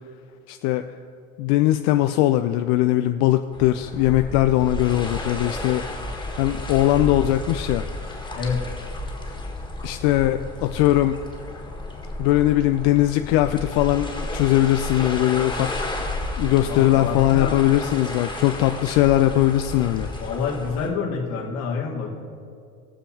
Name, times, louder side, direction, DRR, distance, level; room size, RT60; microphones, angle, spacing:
voice 1, 0.5-0.8 1.4-6.0 6.4-7.9 9.8-11.2 12.2-15.7 16.4-20.1, left 14 dB, 55° left, 8 dB, 0.5 m, -20 dB
sound 1, 3.5-20.9, left 2 dB, 10° left, 1.7 m, -32 dB
voice 2, 16.6-17.6 20.2-22.1, left 5 dB, 70° left, -2 dB, 2.1 m, -27 dB
20.0 x 7.0 x 2.9 m, 2.3 s
hypercardioid pair, 65°, 43 cm